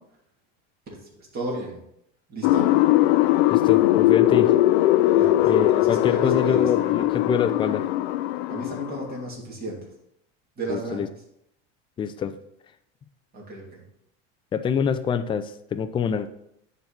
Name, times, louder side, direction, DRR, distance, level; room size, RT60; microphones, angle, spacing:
voice 1, 0.9-1.8 2.3-2.7 5.1-6.6 8.5-9.8 10.6-11.1 13.3-13.8, right 2 dB, 30° right, -3 dB, 3.0 m, -34 dB
sound 1, 2.4-9.2, left 15 dB, 85° left, 0.5 m, -20 dB
voice 2, 3.5-4.5 5.4-7.9 10.7-11.1 12.0-12.4 14.5-16.3, left 7 dB, 15° left, 10 dB, 0.4 m, -25 dB
10.5 x 4.0 x 4.2 m, 0.76 s
supercardioid pair, 135°, 30 cm